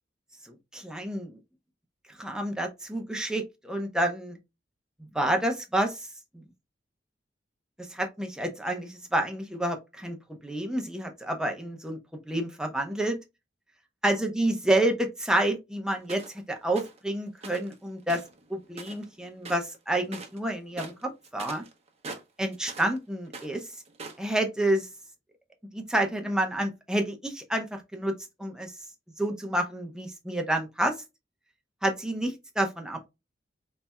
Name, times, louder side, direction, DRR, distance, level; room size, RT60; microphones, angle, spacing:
voice 1, 0.4-1.4 2.1-4.4 5.0-6.0 6.3-6.4 7.9-12.0 12.3-13.2 14.0-18.2 18.5-21.6 22.4-23.7 24.2-24.9 25.7-28.1 28.4-28.7 29.2-31.0 31.8-33.1, right 1 dB, 5° right, 0.7 m, -29 dB
sound 1, 16.1-16.4 16.7-17.0 17.4-17.7 18.0-19.1 19.4-19.8 20.0-20.4 20.7-23.0 23.2-24.3, right 3 dB, 35° right, 0.8 m, -42 dB
4.2 x 3.3 x 2.3 m
head